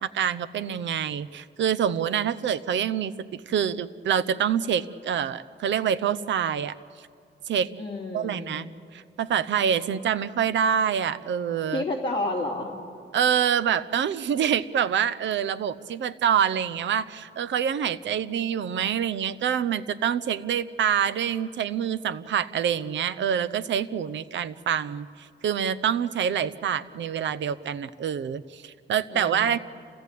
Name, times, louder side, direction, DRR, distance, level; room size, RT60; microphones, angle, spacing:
voice 1, 0.0-6.7 7.5-7.7 8.1-11.8 13.1-25.1 25.4-29.6, right 8 dB, 70° right, 15 dB, 0.8 m, -26 dB
voice 2, 7.8-8.6 11.7-12.7 29.1-29.6, left 2 dB, 25° left, -3 dB, 2.9 m, -30 dB
28.0 x 16.5 x 8.4 m, 2.4 s
wide cardioid pair, 160°, 20 cm